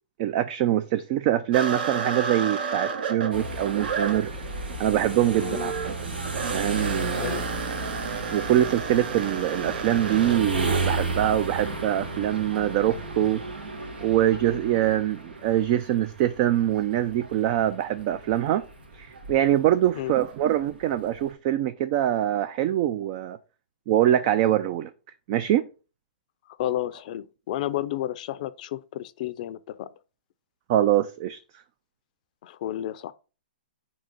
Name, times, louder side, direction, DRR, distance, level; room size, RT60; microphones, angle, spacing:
voice 1, 0.2-4.3 4.8-5.7 6.0-6.2 6.5-7.5 8.3-13.4 14.0-18.6 18.9-23.4 23.9-24.9 25.3-25.7 30.7-31.4, right 12 dB, 40° right, 0.4 m, -24 dB
sound 1, 1.5-10.4, right 6 dB, 70° right, 1.0 m, -32 dB
sound 2, 3.3-21.3, right 2 dB, 90° right, 1.5 m, -34 dB
voice 2, 5.3-5.7 7.2-7.4 19.9-20.1 26.6-29.9 32.4-33.1, left 13 dB, 50° left, 0.5 m, -31 dB
4.8 x 3.8 x 5.3 m
hypercardioid pair, 135°, 5 cm